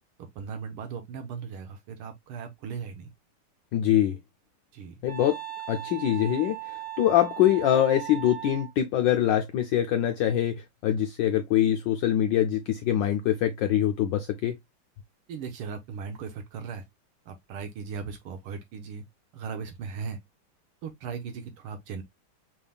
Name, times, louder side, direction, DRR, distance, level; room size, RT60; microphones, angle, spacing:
voice 1, 0.2-3.1 4.7-4.9 15.3-16.8 17.3-19.0 19.3-20.2 20.8-22.0, right 6 dB, 85° right, 1.8 m, -37 dB
voice 2, 3.7-4.2 5.0-5.4 5.7-14.5, left 11 dB, 75° left, 1.1 m, -24 dB
Wind instrument woodwind instrument, 5.1-8.7, right 13 dB, 50° right, 1.1 m, -38 dB
5.5 x 3.5 x 2.2 m
omnidirectional pair, 2.4 m